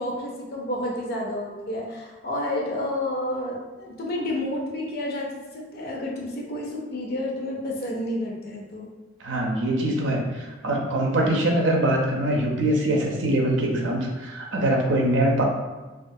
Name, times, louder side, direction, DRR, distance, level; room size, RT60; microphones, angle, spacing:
voice 1, 0.0-5.3 5.5-8.9, left 1 dB, 55° left, -1 dB, 0.5 m, -30 dB
voice 2, 9.2-15.4, right 1 dB, 85° right, -1 dB, 0.5 m, -23 dB
2.4 x 2.3 x 2.6 m, 1.2 s
head